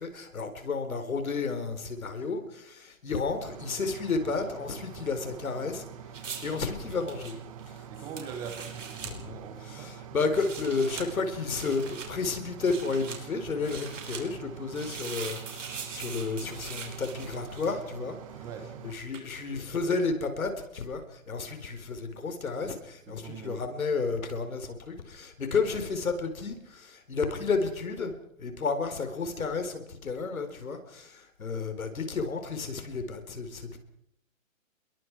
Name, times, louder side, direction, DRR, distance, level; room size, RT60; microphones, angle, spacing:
voice 1, 0.0-5.8 6.1-7.4 7.7-7.9 9.0-18.2 18.8-33.8, left 4 dB, 85° left, 7 dB, 4.5 m, -32 dB
sound 1, 3.4-18.9, right 8 dB, 25° right, 1.6 m, -45 dB
sound 2, 6.1-9.1 10.2-11.1 11.5-12.1 12.6-13.2 13.6-14.2 14.7-17.9 19.1-19.3, right 6 dB, 65° right, 5.6 m, -42 dB
voice 2, 7.9-9.9 18.4-18.7 23.1-23.6, right 6 dB, 10° right, 7 dB, 1.2 m, -42 dB
28.5 x 22.0 x 4.8 m, 0.72 s
hypercardioid pair, 165°, 41 cm